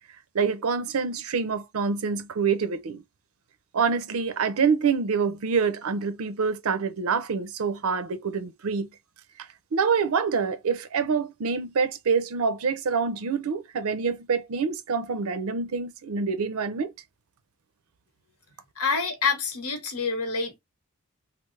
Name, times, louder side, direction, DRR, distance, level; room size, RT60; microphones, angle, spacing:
voice 1, 0.3-3.0 3.7-8.9 9.7-16.9, right 5 dB, 75° right, 0.5 m, -26 dB
voice 2, 18.8-20.6, left 5 dB, 85° left, 1.1 m, -27 dB
3.2 x 2.0 x 3.2 m
head